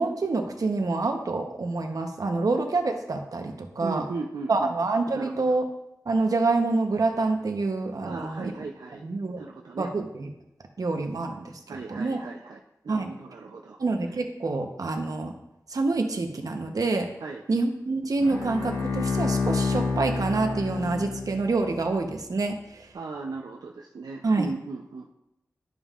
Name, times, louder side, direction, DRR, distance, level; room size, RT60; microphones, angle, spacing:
voice 1, 0.0-4.0 4.5-5.6 6.1-8.5 9.0-9.4 9.8-10.3 10.8-11.5 11.9-12.2 12.9-13.1 13.8-15.3 15.7-17.1 17.5-22.9 24.2-24.5, right 3 dB, 65° right, 4 dB, 0.9 m, -27 dB
voice 2, 3.8-4.8 5.1-5.6 8.0-9.1 9.4-9.9 11.7-13.8 17.2-17.4 22.9-25.1, right 4 dB, 85° right, 0 dB, 0.5 m, -37 dB
Bowed string instrument, 18.2-21.7, left 4 dB, 80° left, 1.6 m, -28 dB
11.5 x 5.5 x 2.4 m, 0.88 s
wide cardioid pair, 70°, 7 cm